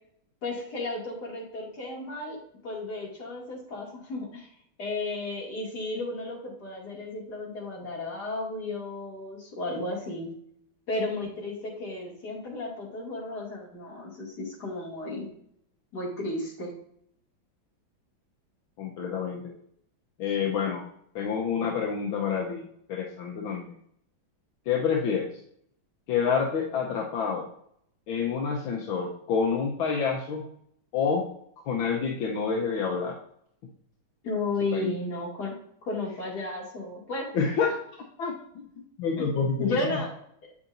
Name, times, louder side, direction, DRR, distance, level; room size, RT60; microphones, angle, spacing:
voice 1, 0.4-2.4 2.6-4.5 4.8-10.3 10.9-15.3 15.9-16.8 34.2-37.3 39.2-40.1, left 2 dB, 55° left, -3 dB, 2.7 m, -33 dB
voice 2, 18.8-19.5 20.2-20.8 21.1-22.6 22.9-23.7 24.7-25.3 26.1-27.5 28.1-30.4 30.9-31.3 31.6-33.2 34.7-34.9 37.3-37.7 38.2-38.7 39.0-39.8, left 6 dB, 80° left, 0 dB, 1.7 m, -28 dB
8.3 x 6.9 x 2.6 m, 0.69 s
omnidirectional pair, 2.2 m